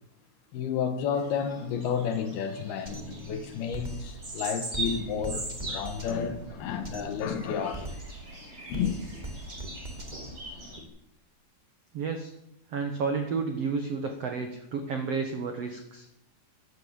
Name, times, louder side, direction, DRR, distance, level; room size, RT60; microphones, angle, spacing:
voice 1, 0.5-7.9 8.7-9.0, left 7 dB, 70° left, 3.1 m, -31 dB
sound 1, 1.1-10.8, right 2 dB, 20° right, 2.7 m, -41 dB
Drum kit, 2.8-10.8, right 1 dB, 35° right, 0.7 m, -41 dB
voice 2, 11.9-12.3 12.7-16.1, right 5 dB, 80° right, 1.4 m, -31 dB
13.0 x 11.5 x 8.6 m
omnidirectional pair, 4.9 m